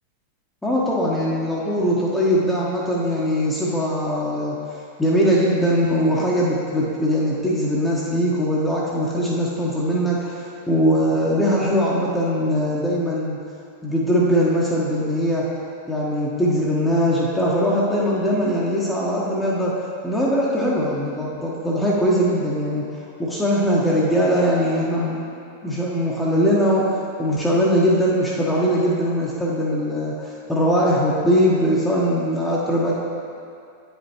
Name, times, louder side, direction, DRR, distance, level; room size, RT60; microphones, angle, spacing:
voice 1, 0.6-4.5 5.0-10.4 10.7-13.4 13.8-15.5 15.9-19.7 20.0-22.8 23.2-25.2 25.6-32.9, equal, 5° left, -6 dB, 1.1 m, -21 dB
9.0 x 5.4 x 3.0 m, 2.5 s
figure-of-eight pair, 95°, 0 cm